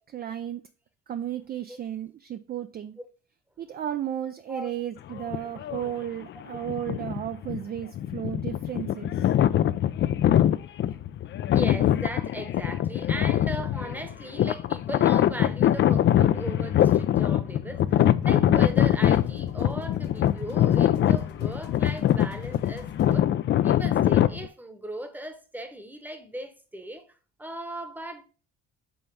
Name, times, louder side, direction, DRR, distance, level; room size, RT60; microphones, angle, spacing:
voice 1, 0.1-0.6 1.1-3.0 3.6-9.3, right 10 dB, 35° right, 0.4 m, -34 dB
sound 1, 5.2-5.9 6.5-24.5, left 11 dB, 40° left, 0.4 m, -23 dB
voice 2, 11.4-23.3 23.6-27.1 27.4-28.2, right 1 dB, 5° right, 1.0 m, -38 dB
sound 2, 15.8-17.2 17.7-23.1, left 7 dB, 80° left, 1.3 m, -44 dB
5.4 x 3.4 x 5.5 m
supercardioid pair, 90°, 29 cm